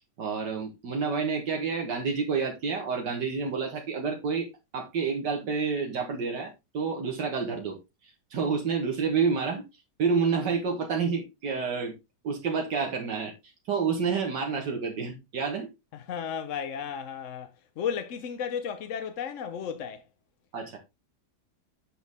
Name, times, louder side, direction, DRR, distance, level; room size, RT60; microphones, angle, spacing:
voice 1, 0.2-4.5 4.7-7.8 8.0-9.6 10.0-12.0 12.2-15.7 20.5-20.8, right 5 dB, 70° right, 1.9 m, -29 dB
voice 2, 15.9-20.0, left 7 dB, 55° left, 0.9 m, -34 dB
8.1 x 6.2 x 3.5 m
omnidirectional pair, 1.9 m